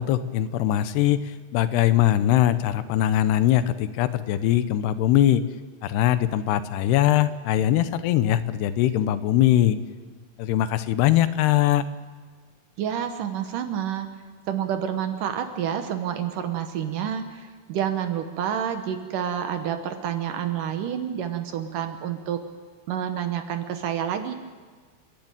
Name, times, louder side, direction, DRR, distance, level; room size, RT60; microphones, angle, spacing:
voice 1, 0.0-5.4 5.8-9.8 10.4-11.8, left 12 dB, 90° left, 13 dB, 2.9 m, -21 dB
voice 2, 12.8-14.1 14.5-22.4 22.9-24.3, right 9 dB, 70° right, 8 dB, 2.3 m, -28 dB
30.0 x 11.0 x 8.9 m, 1.5 s
omnidirectional pair, 4.6 m